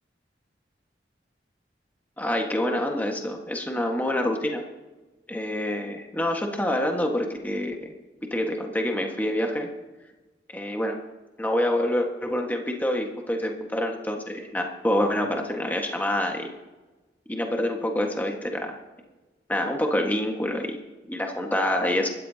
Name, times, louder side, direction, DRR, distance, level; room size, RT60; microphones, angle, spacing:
voice 1, 2.2-4.6 5.3-7.9 8.2-9.7 10.5-11.0 11.4-16.5 17.3-18.8 19.5-20.8 21.1-22.1, left 1 dB, 10° left, 2 dB, 1.5 m, -26 dB
26.0 x 13.0 x 2.9 m, 1.2 s
head